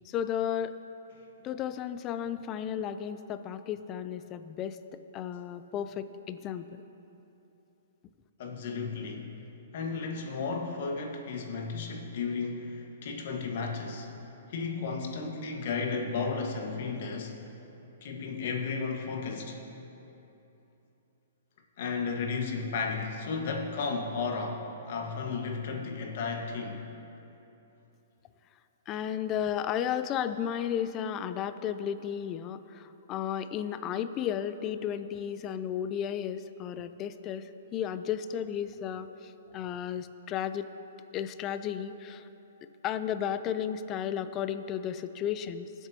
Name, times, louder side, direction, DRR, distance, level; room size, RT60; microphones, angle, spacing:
voice 1, 0.0-0.8 1.4-6.8 28.9-40.7 41.1-42.3 42.8-45.9, left 9 dB, 30° left, 12 dB, 0.4 m, -34 dB
voice 2, 8.4-9.3 9.7-14.1 14.5-17.4 18.0-19.6 21.8-26.8, left 4 dB, 60° left, 2 dB, 1.5 m, -34 dB
20.0 x 8.0 x 2.9 m, 3.0 s
hypercardioid pair, 130°, 0 cm